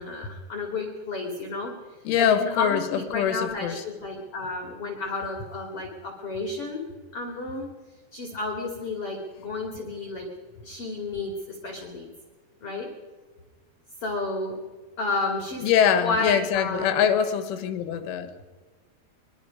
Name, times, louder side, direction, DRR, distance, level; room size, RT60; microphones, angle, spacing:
voice 1, 0.0-1.7 2.2-6.8 7.1-7.7 8.1-10.3 10.6-12.1 12.6-12.9 14.0-14.6 15.0-15.7 16.0-17.1, left 3 dB, 35° left, 2.7 m, -31 dB
voice 2, 2.1-3.8 15.6-18.3, left 8 dB, 85° left, 4.1 m, -23 dB
23.5 x 22.5 x 5.3 m
omnidirectional pair, 5.5 m